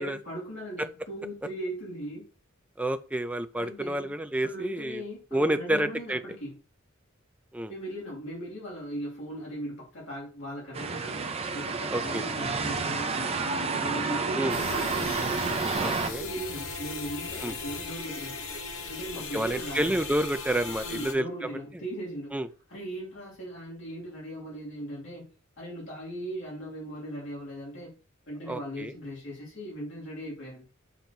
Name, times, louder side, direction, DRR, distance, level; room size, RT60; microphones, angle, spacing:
voice 1, 0.0-2.2 3.5-4.1 4.4-6.6 7.7-11.2 11.5-15.1 16.2-18.4 18.9-20.0 20.8-22.4 22.7-25.3 25.6-27.9 28.3-30.7, equal, 65° left, -5 dB, 2.9 m, -38 dB
voice 2, 2.8-5.0 5.3-6.2 7.5-7.7 11.9-12.2 14.4-14.6 15.8-16.2 17.4-17.5 19.3-21.3 22.3-22.5 28.5-28.9, right 1 dB, 5° right, 10 dB, 0.4 m, -29 dB
sound 1, 10.7-16.1, right 4 dB, 30° right, 0.8 m, -30 dB
sound 2, 14.5-21.1, left 4 dB, 90° left, 1.2 m, -38 dB
7.0 x 3.1 x 5.9 m, 0.36 s
head